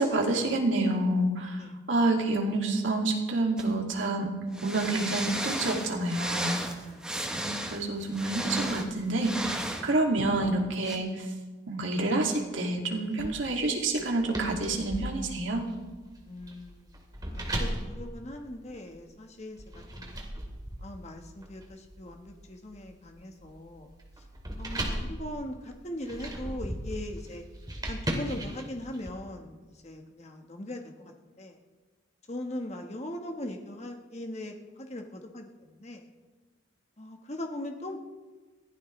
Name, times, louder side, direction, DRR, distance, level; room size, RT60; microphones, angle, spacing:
voice 1, 0.0-4.3 4.6-6.6 7.3-11.3 11.7-15.7, right 2 dB, 80° right, 0 dB, 2.5 m, -28 dB
sound 1, 3.6-3.7 4.5-9.9 10.8-11.0, right 1 dB, 5° right, 1.1 m, -34 dB
voice 2, 6.7-7.1 13.1-13.2 16.2-20.1 20.8-23.9 24.6-27.4 27.9-31.6 32.3-36.1 37.0-38.0, left 1 dB, 35° left, 3 dB, 1.4 m, -40 dB
sound 2, 13.2-19.0 19.6-29.1, right 1 dB, 20° right, 2.3 m, -38 dB
22.0 x 15.5 x 3.3 m, 1.3 s
head